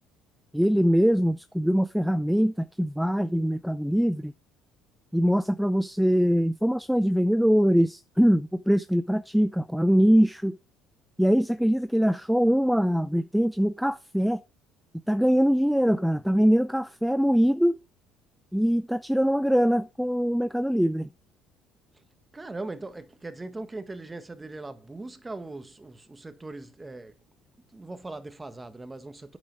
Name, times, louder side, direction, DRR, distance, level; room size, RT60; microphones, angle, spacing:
voice 1, 0.5-4.3 5.1-10.6 11.2-14.4 15.1-17.8 18.5-21.1, equal, ahead, 0.5 m, -23 dB
voice 2, 22.3-27.2 27.7-29.4, right 2 dB, 15° right, 1.3 m, -40 dB
8.6 x 7.6 x 4.7 m
supercardioid pair, 85°, 0 cm